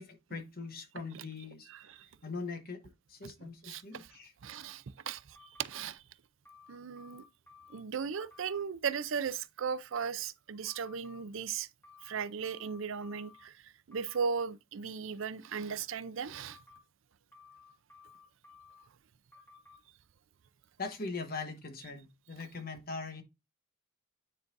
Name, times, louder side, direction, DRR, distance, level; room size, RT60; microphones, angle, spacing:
voice 1, 0.0-1.7 2.2-2.8 3.1-4.3 20.8-23.2, left 4 dB, 45° left, 1.1 m, -41 dB
voice 2, 1.7-2.1 3.2-4.1 4.4-6.0 6.7-7.2 7.7-11.7 12.0-16.6, right 6 dB, 70° right, 0.5 m, -37 dB
sound 1, 5.3-5.8 6.4-7.8 8.1-8.6 10.7-11.2 11.8-13.5 13.9-14.4 16.3-16.8 17.3-18.8 19.3-19.8, left 4 dB, 10° left, 1.8 m, -57 dB
9.6 x 3.9 x 2.6 m
head